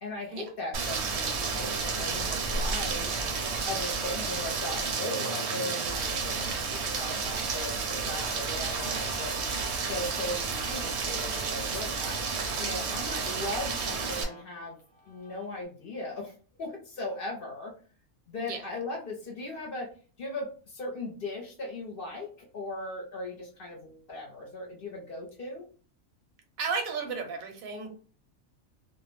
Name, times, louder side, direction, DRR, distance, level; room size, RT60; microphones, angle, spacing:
voice 1, 0.0-3.1 3.6-9.4 9.8-12.2 12.6-14.8 15.1-16.3 16.6-17.7 18.3-19.9 20.2-25.7, left 2 dB, 50° left, -1 dB, 0.8 m, -38 dB
Rain, 0.7-14.2, right 4 dB, 60° right, 0.8 m, -31 dB
Guitar, 8.7-15.6, equal, 20° right, 0.6 m, -49 dB
voice 2, 26.6-27.9, right 4 dB, 85° right, 4 dB, 1.1 m, -33 dB
2.5 x 2.1 x 3.1 m, 0.40 s
omnidirectional pair, 1.4 m